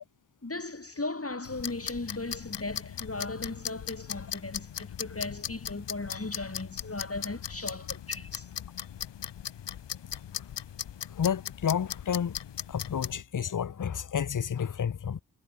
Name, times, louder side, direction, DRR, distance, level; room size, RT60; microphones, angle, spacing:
voice 1, 0.4-8.5, left 2 dB, 35° left, 5.2 m, -37 dB
sound 1, 1.4-13.2, left 9 dB, 85° left, 1.1 m, -39 dB
voice 2, 11.1-12.4 12.7-15.2, left 8 dB, 50° left, 0.8 m, -30 dB
cardioid pair, 40°, 41 cm